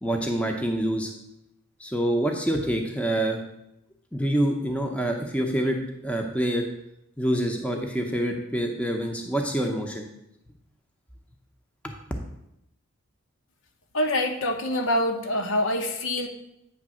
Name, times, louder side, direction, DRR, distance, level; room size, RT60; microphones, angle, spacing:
voice 1, 0.0-1.1 1.8-3.4 4.1-5.8 6.0-6.7 7.2-10.1 11.8-12.0, right 1 dB, 5° left, 2 dB, 0.7 m, -26 dB
voice 2, 13.9-16.3, left 1 dB, 75° left, 4 dB, 0.9 m, -25 dB
8.6 x 3.3 x 6.2 m, 0.82 s
head